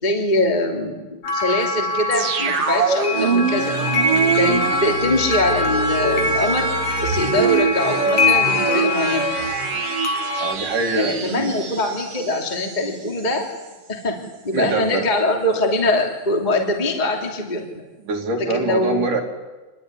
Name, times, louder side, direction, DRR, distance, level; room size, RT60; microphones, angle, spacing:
voice 1, 0.0-3.8 4.4-6.7 7.0-9.3 10.9-13.5 13.9-14.2 14.4-17.6 18.4-19.0, left 2 dB, 15° left, 1 dB, 2.8 m, -23 dB
sound 1, 1.2-10.5, left 3 dB, 55° left, 3.0 m, -24 dB
sound 2, 2.1-12.9 13.2-13.3, right 5 dB, 50° right, 2.6 m, -24 dB
voice 2, 10.4-11.6 14.5-15.0 18.0-19.2, right 3 dB, 65° right, 1 dB, 4.2 m, -24 dB
27.0 x 22.0 x 9.9 m, 1.2 s
omnidirectional pair, 4.0 m